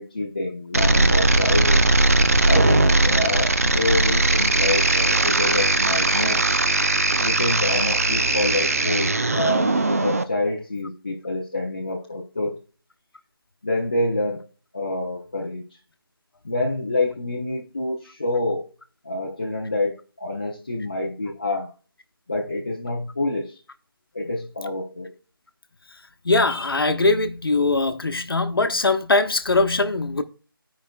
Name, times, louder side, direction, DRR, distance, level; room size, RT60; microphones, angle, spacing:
voice 1, 0.0-1.9 2.5-6.4 7.2-12.6 13.6-14.5 14.7-15.6 16.4-18.7 19.0-21.7 22.3-23.6 24.1-25.1, left 2 dB, 25° left, 0.6 m, -27 dB
sound 1, 0.7-10.2, right 2 dB, 40° right, 0.5 m, -19 dB
voice 2, 25.9-30.2, left 3 dB, 75° left, 0.9 m, -21 dB
14.5 x 5.1 x 2.3 m
figure-of-eight pair, 175°, 12 cm